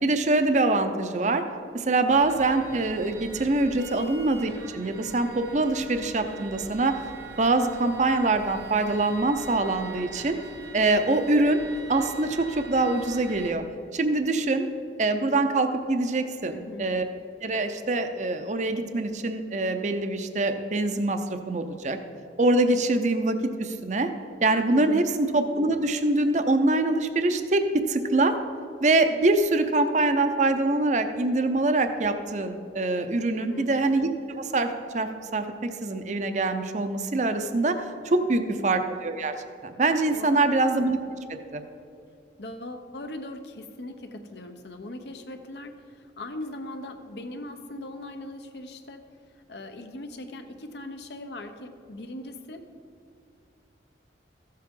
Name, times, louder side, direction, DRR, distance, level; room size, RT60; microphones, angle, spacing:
voice 1, 0.0-1.4 1.7-7.0 7.4-10.4 10.7-11.6 11.9-13.6 13.9-14.7 15.0-17.0 17.4-22.0 22.4-24.1 24.4-28.4 28.8-37.8 38.0-39.3 39.6-41.0 41.5-41.6, right 2 dB, 40° right, 8 dB, 0.6 m, -24 dB
sound 1, 2.1-13.5, right 3 dB, 75° right, 1.1 m, -44 dB
voice 2, 16.5-16.9 24.7-25.1 33.3-33.7 38.3-38.6 40.1-40.5 42.4-49.0 49.3-52.6, left 1 dB, 70° left, 6 dB, 0.8 m, -40 dB
14.5 x 7.5 x 3.7 m, 2.6 s
head